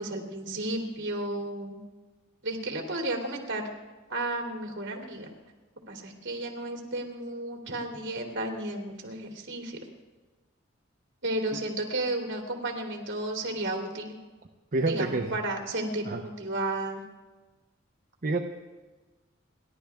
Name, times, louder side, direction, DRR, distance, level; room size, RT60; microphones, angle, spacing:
voice 1, 0.0-1.8 2.4-3.7 4.1-5.3 5.9-9.8 11.2-14.2 14.8-17.0, right 2 dB, 60° right, 1 dB, 2.9 m, -33 dB
voice 2, 14.7-15.3 16.1-16.2 18.2-18.4, right 2 dB, 45° right, 3 dB, 0.8 m, -27 dB
29.5 x 11.5 x 3.6 m, 1.2 s
head